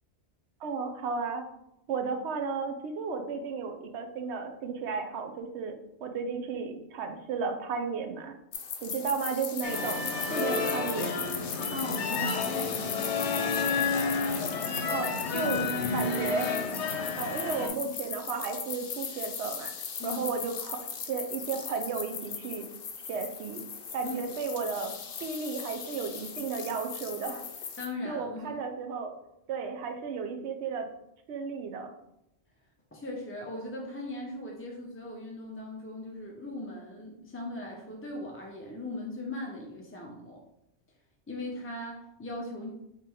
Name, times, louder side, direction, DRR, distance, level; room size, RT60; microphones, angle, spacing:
voice 1, 0.6-1.4 1.9-8.4 8.8-11.2 14.9-16.6 17.2-19.7 20.0-22.7 23.1-23.6 23.9-27.4 28.0-29.2 29.5-30.9 31.3-31.9, right 5 dB, 75° right, 6 dB, 0.9 m, -34 dB
sound 1, 8.5-27.9, left 6 dB, 60° left, 0.7 m, -38 dB
sound 2, 9.6-17.7, left 4 dB, 80° left, 0.9 m, -31 dB
voice 2, 11.7-13.3 20.0-20.2 24.0-24.2 27.8-28.6 32.9-40.4 41.3-42.7, left 1 dB, 20° left, -2 dB, 0.4 m, -39 dB
3.7 x 3.3 x 4.4 m, 0.84 s
omnidirectional pair, 1.2 m